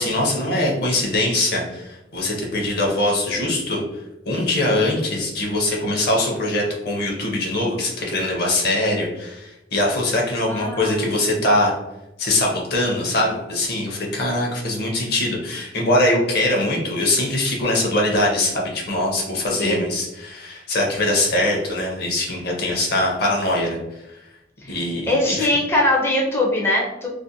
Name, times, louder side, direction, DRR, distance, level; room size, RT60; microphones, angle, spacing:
voice 1, 0.0-3.8 4.3-11.7 12.2-23.8 24.7-25.5, left 1 dB, 55° left, -1 dB, 0.7 m, -22 dB
voice 2, 10.5-11.0 19.6-19.8 24.6-24.8 25.1-27.1, left 1 dB, 15° left, -2 dB, 0.4 m, -21 dB
2.5 x 2.0 x 2.6 m, 0.92 s
head